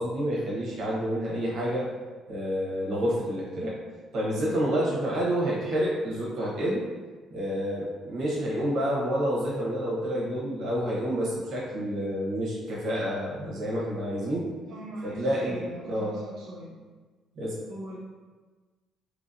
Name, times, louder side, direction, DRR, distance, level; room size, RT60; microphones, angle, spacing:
voice 1, 0.0-1.9 2.3-3.8 4.1-6.9 7.3-14.5 15.0-16.1 17.4-17.6, equal, 60° right, -5 dB, 1.0 m, -29 dB
voice 2, 14.7-16.8 17.7-18.0, right 1 dB, 85° right, -6 dB, 0.5 m, -40 dB
3.0 x 2.8 x 2.6 m, 1.4 s
cardioid pair, 140°, 0 cm